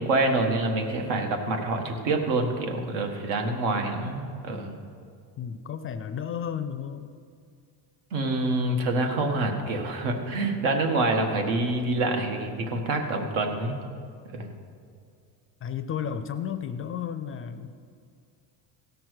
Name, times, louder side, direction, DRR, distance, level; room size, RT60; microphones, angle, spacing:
voice 1, 0.0-4.8 8.1-13.8 14.3-14.5, right 2 dB, 80° right, 3 dB, 1.8 m, -26 dB
voice 2, 5.4-7.1 15.6-17.7, left 8 dB, 30° left, 9 dB, 0.4 m, -33 dB
16.0 x 6.0 x 6.4 m, 2.3 s
cardioid pair, 145°, 46 cm